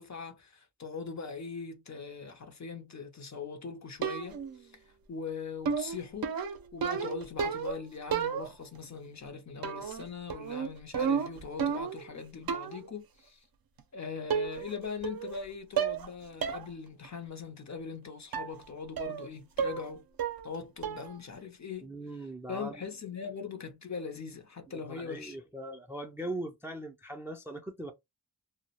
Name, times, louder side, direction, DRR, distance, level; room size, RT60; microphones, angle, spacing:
voice 1, 0.0-4.7 5.1-6.3 6.7-13.4 13.9-20.0 20.4-21.9 22.5-25.4, left 5 dB, 45° left, 0.5 m, -41 dB
sound 1, 4.0-4.6 5.6-7.8 8.1-8.8 9.6-10.0 10.3-12.1 12.5-12.9 13.8-13.9 14.3-14.8 15.0-15.4 15.8-16.1 16.4-16.6 17.0-17.1 18.3-18.6 19.0-19.3 19.6-19.9 20.2-20.6 20.8-21.2, right 7 dB, 60° right, 0.5 m, -32 dB
voice 2, 21.8-22.7 24.7-27.9, right 1 dB, 5° right, 0.4 m, -40 dB
2.3 x 2.1 x 2.8 m
wide cardioid pair, 100°, 41 cm